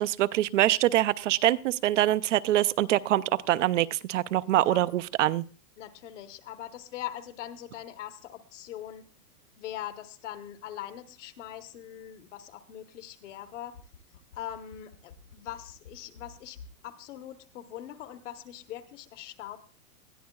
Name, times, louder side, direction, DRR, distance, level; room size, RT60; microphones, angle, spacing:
voice 1, 0.0-5.4, right 14 dB, 55° right, 0.5 m, -24 dB
voice 2, 5.8-9.1 9.6-13.8 14.3-16.6 16.8-19.6, left 12 dB, 50° left, 1.1 m, -41 dB
sound 1, 13.4-16.9 17.2-17.3, left 6 dB, 90° left, 7.3 m, -50 dB
20.0 x 13.5 x 2.3 m
supercardioid pair, 160°, 46 cm